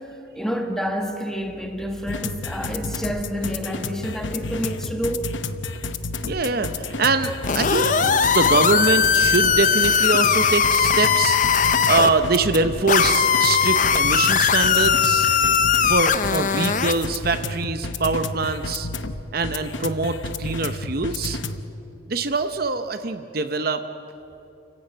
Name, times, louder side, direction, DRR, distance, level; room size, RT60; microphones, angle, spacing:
voice 1, 0.0-5.3, equal, 5° left, 4 dB, 1.7 m, -28 dB
sound 1, 2.1-21.6, left 3 dB, 75° left, 0.9 m, -31 dB
voice 2, 6.2-15.3 15.8-18.9 19.3-21.4 22.1-23.8, right 3 dB, 50° right, 9 dB, 0.8 m, -24 dB
sound 2, 7.5-12.1 12.9-17.1, left 6 dB, 40° left, 0.7 m, -19 dB
28.5 x 16.0 x 9.1 m, 2.9 s
head